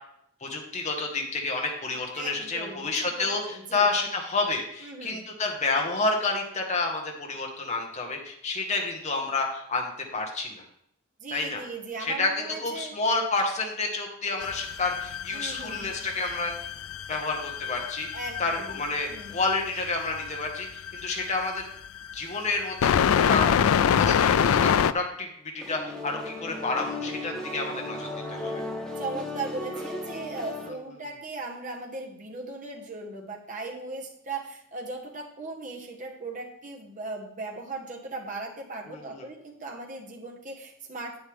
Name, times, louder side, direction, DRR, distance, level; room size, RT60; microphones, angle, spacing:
voice 1, 0.4-3.4 3.7-10.6 11.3-11.6 12.2-12.3 12.6-16.5 17.1-18.1 18.4-21.6 22.1-22.9 23.3-25.3 25.5-28.6 38.9-39.2, left 3 dB, 35° left, 1 dB, 1.3 m, -29 dB
voice 2, 2.1-3.8 4.8-5.3 11.2-13.0 15.3-16.0 18.1-18.8 19.1-19.4 29.0-41.2, right 3 dB, 40° right, -1 dB, 1.5 m, -38 dB
sound 1, 14.4-24.9, left 8 dB, 85° left, 0.3 m, -26 dB
sound 2, 25.6-30.7, left 2 dB, 5° left, 0.9 m, -36 dB
8.6 x 8.2 x 3.6 m, 0.70 s
head